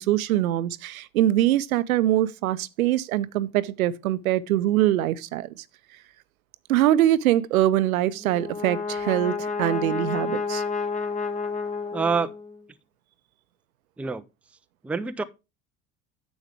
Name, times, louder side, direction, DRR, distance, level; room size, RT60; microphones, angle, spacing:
voice 1, 0.0-5.5 6.7-10.6, right 13 dB, 75° right, 0.7 m, -23 dB
Brass instrument, 8.2-12.6, left 4 dB, 15° left, 1.2 m, -30 dB
voice 2, 11.9-12.3 14.0-14.2 14.8-15.2, right 5 dB, 5° right, 0.5 m, -26 dB
10.0 x 7.1 x 3.4 m
figure-of-eight pair, 65°, 43 cm